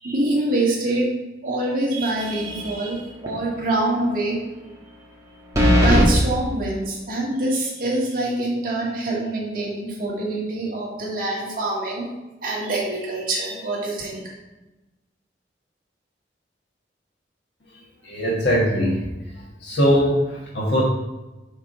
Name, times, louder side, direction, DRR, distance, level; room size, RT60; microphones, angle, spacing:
voice 1, 0.0-1.1 1.4-4.4 5.8-12.1 12.4-14.2, right 2 dB, 50° right, -4 dB, 1.9 m, -25 dB
sound 1, 2.4-2.9 3.3-3.4 5.5-6.1, equal, 20° right, 1.3 m, -17 dB
voice 2, 18.0-19.1 19.6-20.8, equal, 75° left, -4 dB, 1.3 m, -21 dB
5.7 x 4.5 x 5.4 m, 1.1 s
head